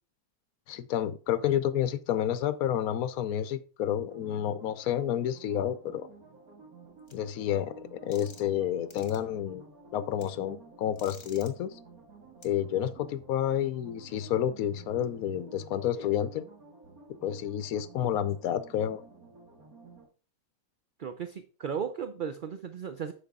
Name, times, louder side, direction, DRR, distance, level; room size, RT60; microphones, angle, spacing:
voice 1, 0.7-6.1 7.1-9.7 9.9-11.8 12.4-16.5 17.2-19.0, left 10 dB, 75° left, 1.1 m, -30 dB
sound 1, 4.1-20.1, right 3 dB, 75° right, 2.6 m, -52 dB
sound 2, 7.1-7.2 8.1-8.6 8.9-9.2 10.2-10.3 11.0-11.5 12.4-12.5, left 4 dB, 55° left, 1.9 m, -50 dB
voice 2, 21.0-23.1, right 7 dB, 55° right, 0.6 m, -35 dB
9.7 x 6.6 x 3.6 m
omnidirectional pair, 1.5 m